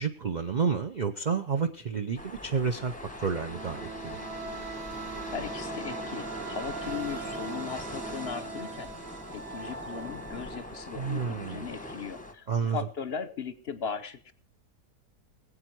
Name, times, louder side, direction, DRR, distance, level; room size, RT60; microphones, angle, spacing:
voice 1, 0.0-4.2 11.0-11.7 12.5-12.8, right 6 dB, 55° right, 6 dB, 0.5 m, -30 dB
sound 1, 2.2-12.3, left 1 dB, 5° left, 0.9 m, -41 dB
sound 2, 3.0-11.6, right 5 dB, 80° right, 2.3 m, -41 dB
voice 2, 5.3-8.9 9.3-14.3, left 6 dB, 45° left, 13 dB, 0.9 m, -38 dB
20.0 x 8.6 x 4.5 m, 0.43 s
omnidirectional pair, 1.8 m